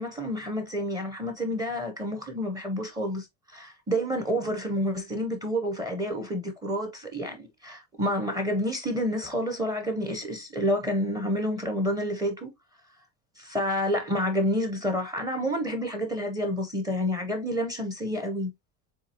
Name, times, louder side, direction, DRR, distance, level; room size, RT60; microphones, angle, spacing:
voice 1, 0.0-12.5 13.4-18.5, equal, 10° right, 0.6 m, -29 dB
7.1 x 2.7 x 2.7 m
cardioid pair, 180°, 43 cm